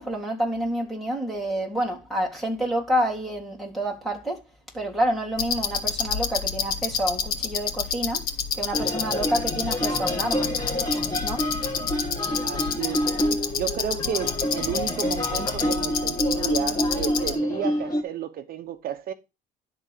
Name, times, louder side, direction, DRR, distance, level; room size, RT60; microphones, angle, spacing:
voice 1, 0.0-4.4 4.7-8.2 8.5-10.5 11.2-11.5 13.3-13.4, right 1 dB, ahead, 3.5 m, -28 dB
sound 1, 5.4-17.3, left 7 dB, 60° left, 1.8 m, -29 dB
sound 2, 8.7-18.0, equal, 20° left, 2.3 m, -28 dB
voice 2, 12.4-19.1, right 9 dB, 60° right, 0.9 m, -32 dB
11.5 x 3.9 x 6.6 m
cardioid pair, 110°, 17 cm